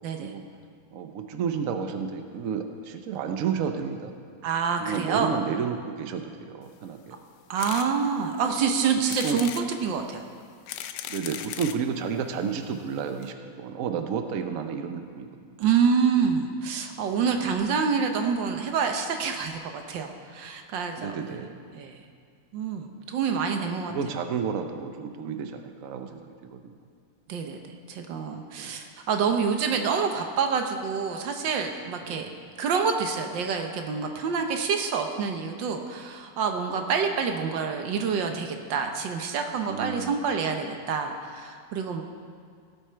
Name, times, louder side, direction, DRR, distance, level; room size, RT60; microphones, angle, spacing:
voice 1, 0.9-4.1 4.8-7.2 9.2-9.4 11.1-15.6 17.2-17.4 21.0-21.7 23.3-26.8 28.6-28.8 32.1-32.4 36.7-37.0 39.7-40.1, right 6 dB, 60° right, 6 dB, 1.0 m, -32 dB
voice 2, 4.4-5.3 7.5-10.2 15.6-21.4 21.7-22.0 22.5-23.9 27.3-27.6 27.9-32.3 32.6-42.0, right 6 dB, 85° right, 5 dB, 1.7 m, -27 dB
sound 1, 7.6-7.9 8.4-8.5 9.1-9.7 10.4-11.8 12.6-12.7 12.9-13.0 13.2-13.3, left 10 dB, 70° left, 1.1 m, -37 dB
16.5 x 8.1 x 4.5 m, 2.2 s
omnidirectional pair, 1.9 m